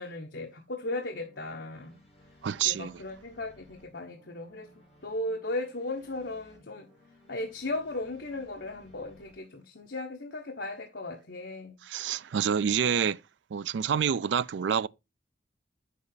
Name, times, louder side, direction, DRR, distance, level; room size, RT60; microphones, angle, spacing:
voice 1, 0.0-2.0 2.6-4.7 5.0-6.9 7.3-11.8, left 2 dB, 70° left, 1.2 m, -36 dB
sound 1, 1.1-9.3, left 1 dB, ahead, 5.5 m, -59 dB
voice 2, 2.4-2.9 11.9-13.2 13.5-14.9, right 7 dB, 80° right, 0.4 m, -27 dB
8.4 x 7.3 x 4.0 m
head